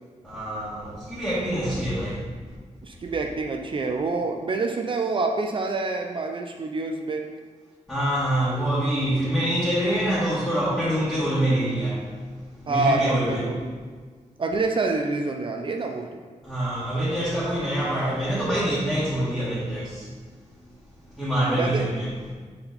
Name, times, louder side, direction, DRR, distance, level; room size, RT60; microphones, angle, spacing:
voice 1, 0.2-2.2 7.9-12.1 12.6-13.4 16.4-20.1 21.2-22.1, right 1 dB, 5° left, -10 dB, 1.5 m, -25 dB
voice 2, 2.8-7.2 12.7-13.8 14.4-16.1 21.5-21.9, right 3 dB, 40° right, 3 dB, 0.4 m, -27 dB
5.7 x 4.3 x 4.0 m, 1.5 s
wide cardioid pair, 145°, 13 cm